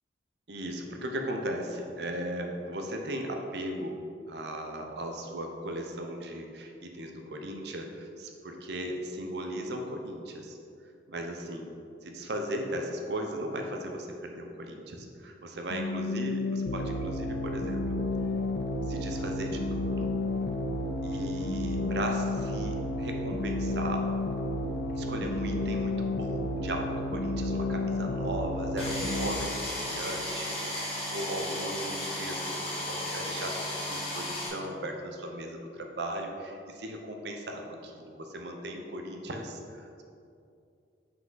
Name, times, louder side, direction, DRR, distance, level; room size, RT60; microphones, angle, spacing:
voice 1, 0.5-4.0 4.3-10.6 11.1-11.7 12.0-17.8 18.8-20.2 21.0-24.1 24.9-40.0, right 1 dB, 60° right, 3 dB, 0.6 m, -37 dB
sound 1, 15.7-29.3, left 2 dB, 55° left, 0.5 m, -31 dB
sound 2, 28.8-34.5, left 1 dB, 30° left, 1.1 m, -34 dB
5.8 x 4.9 x 3.8 m, 2.5 s
head